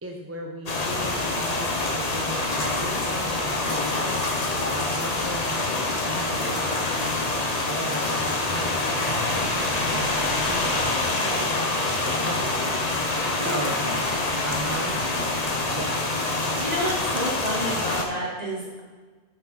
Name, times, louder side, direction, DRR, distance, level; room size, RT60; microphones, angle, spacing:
voice 1, 0.0-4.1 4.6-11.5 12.0-12.9 13.4-13.9 14.4-15.0 15.7-15.9, right 1 dB, 15° right, 1 dB, 0.6 m, -36 dB
sound 1, 0.7-18.0, left 2 dB, 35° left, 1.1 m, -26 dB
voice 2, 13.3-13.7 16.5-18.8, equal, 35° right, -4 dB, 2.5 m, -30 dB
10.5 x 6.0 x 4.3 m, 1.3 s
omnidirectional pair, 1.1 m